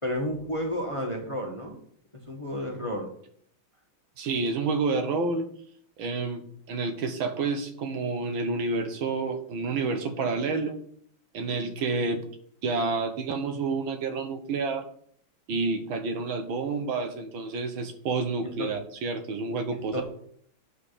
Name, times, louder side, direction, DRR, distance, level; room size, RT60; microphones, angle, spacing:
voice 1, 0.0-1.8 2.3-3.1 18.4-18.7 19.7-20.0, equal, 15° left, 1 dB, 1.4 m, -31 dB
voice 2, 4.2-5.5 6.0-10.8 11.3-12.2 12.6-14.9 15.5-20.0, right 3 dB, 70° right, 7 dB, 1.8 m, -29 dB
10.0 x 5.0 x 6.6 m, 0.62 s
omnidirectional pair, 2.4 m